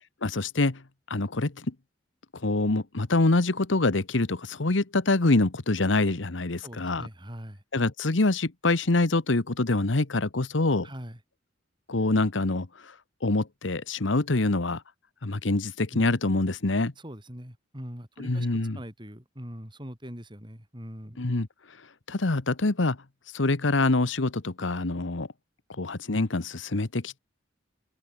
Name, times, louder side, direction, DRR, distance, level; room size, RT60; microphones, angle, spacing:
voice 1, 0.2-0.8 1.1-1.7 2.3-7.1 7.7-10.9 11.9-14.8 15.2-16.9 18.2-18.8 21.2-21.8 22.1-23.0 23.3-25.3 25.7-27.2, left 2 dB, 80° left, 1.3 m, -25 dB
voice 2, 6.6-7.6 10.8-11.2 15.9-16.0 17.0-21.2, equal, 25° right, 6.3 m, -42 dB
open air
head